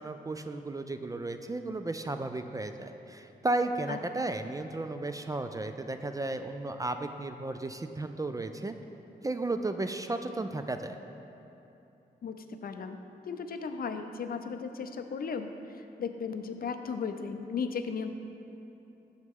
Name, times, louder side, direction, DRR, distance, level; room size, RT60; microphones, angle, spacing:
voice 1, 0.0-8.8 9.2-11.0, right 2 dB, 20° right, 8 dB, 0.3 m, -34 dB
voice 2, 12.2-13.0 13.2-18.1, left 5 dB, 60° left, 7 dB, 0.5 m, -36 dB
6.5 x 6.4 x 3.6 m, 2.9 s
cardioid pair, 55°, 18 cm